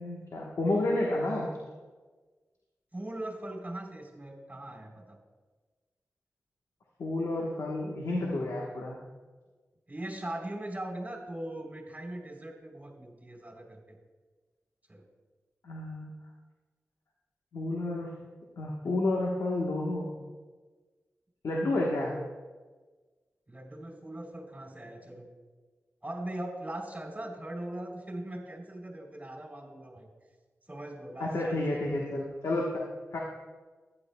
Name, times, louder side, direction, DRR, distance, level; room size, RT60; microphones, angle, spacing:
voice 1, 0.0-1.5 7.0-9.0 15.6-16.1 17.5-18.2 18.6-20.1 21.4-22.2 31.2-32.8 33.1-33.2, left 2 dB, 85° left, -2 dB, 1.3 m, -30 dB
voice 2, 2.9-5.2 9.9-14.0 14.9-15.0 23.5-25.3 26.0-30.1 30.7-31.8, right 1 dB, 25° right, 1 dB, 3.6 m, -40 dB
15.0 x 10.5 x 2.3 m, 1.3 s
cardioid pair, 40°, 5 cm